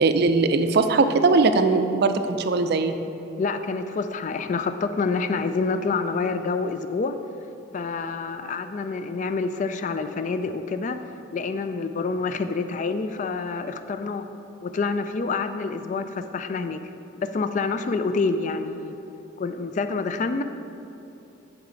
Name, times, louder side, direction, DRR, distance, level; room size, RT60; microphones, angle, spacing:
voice 1, 0.0-2.9, right 3 dB, 55° right, 8 dB, 0.4 m, -20 dB
voice 2, 3.4-7.2 7.7-11.0 11.3-14.2 14.6-16.8 17.2-19.0 19.4-20.4, left 4 dB, 40° left, 9 dB, 0.3 m, -27 dB
10.5 x 4.8 x 3.8 m, 2.9 s
head